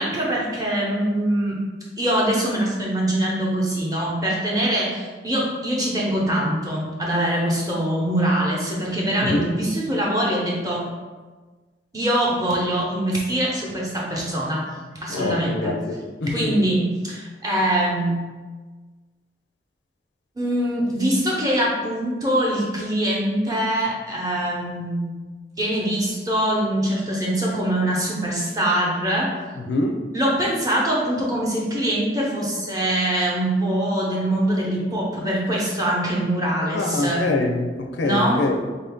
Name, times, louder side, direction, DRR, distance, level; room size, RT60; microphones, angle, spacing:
voice 1, 0.0-1.5 2.0-10.8 11.9-14.6 14.9-15.7 16.3-18.1 20.4-25.2 25.6-29.3 30.1-37.3 38.0-38.4, right 1 dB, 20° right, -4 dB, 0.8 m, -23 dB
voice 2, 15.1-16.5 29.6-30.0 36.7-37.7 38.0-38.6, left 2 dB, 85° left, 4 dB, 0.4 m, -24 dB
4.0 x 2.7 x 3.5 m, 1.3 s
head